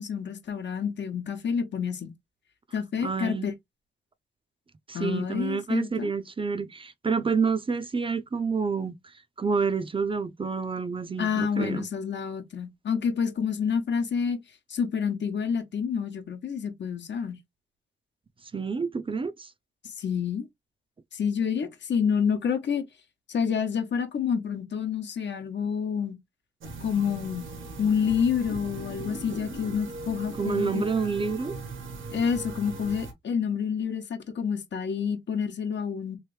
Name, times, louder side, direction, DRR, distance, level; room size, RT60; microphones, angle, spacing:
voice 1, 0.0-2.1 2.7-3.5 4.9-6.1 11.2-14.4 14.7-17.4 19.8-20.5 21.1-22.8 23.3-26.1 26.8-27.5 27.8-30.8 32.1-36.2, left 7 dB, 65° left, 0.9 m, -28 dB
voice 2, 3.0-3.5 4.9-9.0 9.4-11.9 18.5-19.5 30.4-31.6, right 5 dB, 25° right, 0.5 m, -28 dB
sound 1, 26.6-33.1, right 3 dB, 80° right, 1.1 m, -39 dB
3.2 x 2.5 x 3.2 m
cardioid pair, 75°, 20 cm